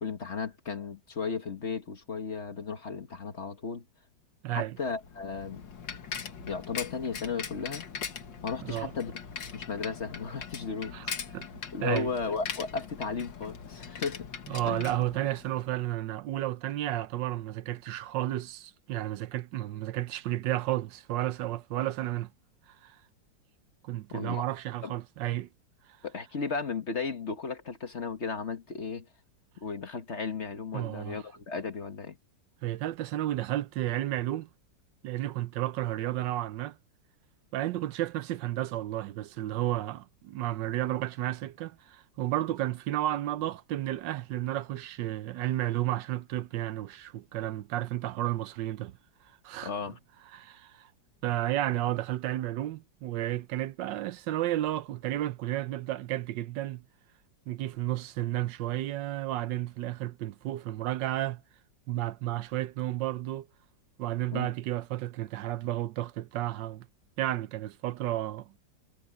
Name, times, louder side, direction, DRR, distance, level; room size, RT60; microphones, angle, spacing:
voice 1, 0.0-3.8 4.5-5.6 6.5-7.8 8.4-9.1 9.4-10.9 11.3-11.4 11.7-14.3 14.6-14.9 24.1-24.4 24.8-24.9 26.0-29.1 29.6-32.2 49.6-50.0 64.3-64.5, left 5 dB, 40° left, 1.5 m, -35 dB
voice 2, 4.4-4.8 8.6-8.9 10.9-11.5 11.8-12.1 14.5-22.3 22.7-23.0 23.8-25.5 30.7-31.2 32.6-34.5 35.0-36.8 37.5-48.9 49.4-49.7 50.3-50.9 51.2-56.8 57.5-61.4 61.9-63.5 64.0-66.9 67.2-68.5, right 14 dB, 80° right, 1.3 m, -32 dB
Bicycle, 4.9-15.7, left 6 dB, 80° left, 2.4 m, -41 dB
omnidirectional pair, 2.0 m